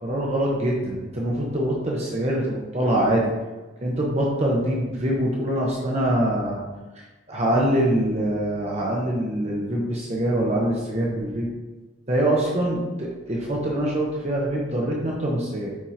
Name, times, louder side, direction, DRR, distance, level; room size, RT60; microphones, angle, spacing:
voice 1, 0.0-3.3 3.8-6.6 7.3-11.5 12.1-15.7, right 1 dB, 30° right, -3 dB, 0.9 m, -24 dB
9.2 x 3.5 x 2.9 m, 1.2 s
head